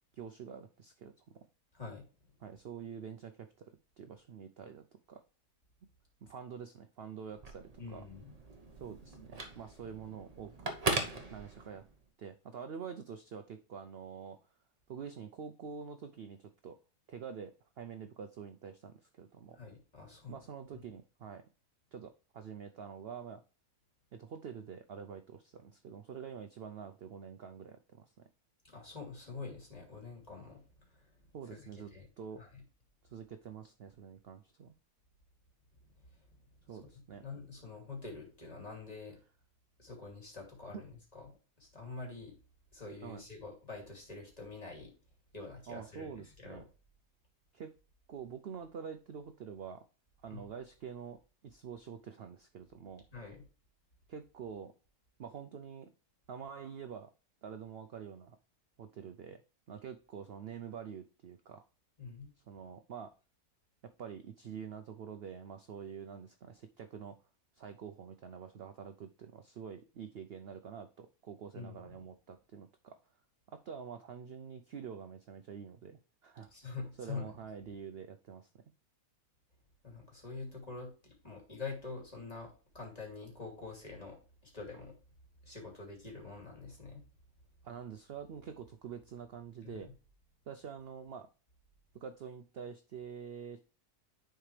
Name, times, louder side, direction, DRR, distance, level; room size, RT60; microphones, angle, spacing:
voice 1, 0.1-1.5 2.4-3.7 4.0-5.2 6.2-8.0 8.8-10.7 11.3-11.8 12.2-14.4 14.9-16.8 17.1-19.6 20.3-21.4 21.9-23.4 24.1-28.3 31.3-32.4 33.0-34.7 36.7-37.2 43.0-43.2 45.7-46.6 47.5-47.7 48.1-49.8 50.2-53.0 54.1-54.7 55.2-55.9 56.3-57.1 57.4-58.4 58.8-59.4 59.7-61.6 62.5-63.1 63.8-67.2 67.5-73.0 73.5-78.5 87.6-89.9 90.5-91.3 91.9-93.6, right 7 dB, 85° right, 8 dB, 0.5 m, -46 dB
Telephone, 7.3-12.0, right 2 dB, 30° right, 0.9 m, -39 dB
voice 2, 7.8-8.3 19.5-20.4 28.6-31.1 31.5-31.6 31.9-32.1 32.4-32.6 36.1-36.2 37.2-39.2 39.8-42.4 42.7-44.9 45.3-46.1 46.4-46.6 50.3-50.5 53.1-53.4 62.0-62.3 71.5-71.8 76.5-77.3 79.8-84.2 84.5-84.9 85.4-87.0 89.6-89.8, left 4 dB, 25° left, 0 dB, 2.8 m, -46 dB
10.5 x 4.5 x 3.2 m, 0.35 s
omnidirectional pair, 1.7 m